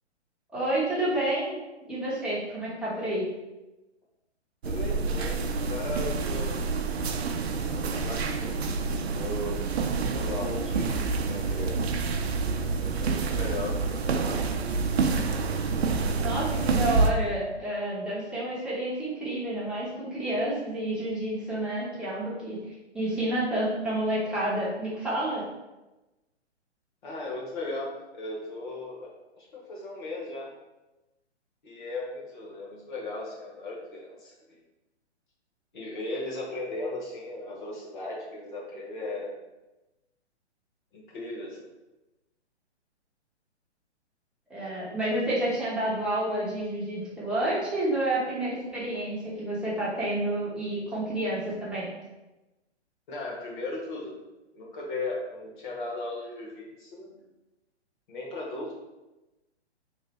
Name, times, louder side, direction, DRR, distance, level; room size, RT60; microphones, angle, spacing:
voice 1, 0.5-1.6 1.9-3.2 16.2-22.6 22.9-25.4 44.5-51.9, right 1 dB, 5° right, -9 dB, 0.7 m, -29 dB
voice 2, 4.6-6.6 7.5-9.6 10.1-11.9 12.5-14.6 27.0-29.1 29.4-30.5 31.6-34.3 35.7-39.4 40.9-41.7 53.1-54.1 54.5-57.1 58.1-58.7, left 2 dB, 45° left, -3 dB, 1.2 m, -37 dB
sound 1, 4.6-17.1, right 4 dB, 65° right, 0.5 m, -28 dB
3.1 x 2.5 x 3.9 m, 1.0 s
figure-of-eight pair, 130°, 34 cm